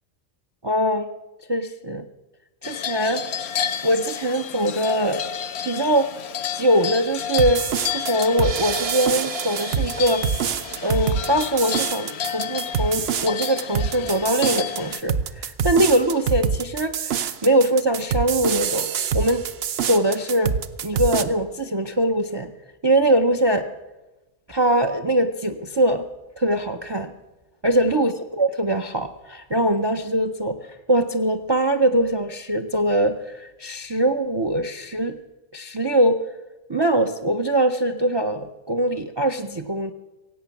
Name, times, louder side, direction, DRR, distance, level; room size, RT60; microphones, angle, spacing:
voice 1, 0.6-1.1 1.5-2.1 2.6-3.2 3.8-5.3 5.6-6.1 6.5-7.6 7.9-10.3 10.8-18.9 19.1-19.4 19.8-20.6 20.8-22.5 22.8-23.6 24.5-26.0 26.4-27.1 27.6-35.2 35.5-36.2 36.7-39.9, right 1 dB, 40° right, 9 dB, 0.3 m, -22 dB
sound 1, 2.6-15.0, left 8 dB, 60° left, 0.8 m, -31 dB
sound 2, 7.4-21.2, right 7 dB, 55° right, 0.8 m, -26 dB
16.5 x 8.3 x 7.0 m, 1.1 s
omnidirectional pair, 1.4 m